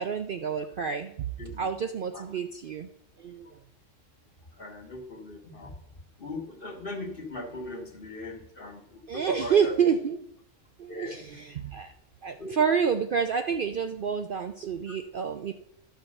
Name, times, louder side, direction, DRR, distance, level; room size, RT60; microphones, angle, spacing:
voice 1, 0.0-1.3 1.6-2.9 3.2-3.6 9.1-10.3 10.8-11.9 12.2-15.5, right 6 dB, 55° right, 6 dB, 0.6 m, -28 dB
voice 2, 4.5-5.8 6.2-9.8 10.9-11.7 12.4-12.6 14.9-15.0, left 2 dB, 45° left, 4 dB, 1.5 m, -39 dB
11.5 x 4.5 x 6.4 m, 0.71 s
omnidirectional pair, 1.3 m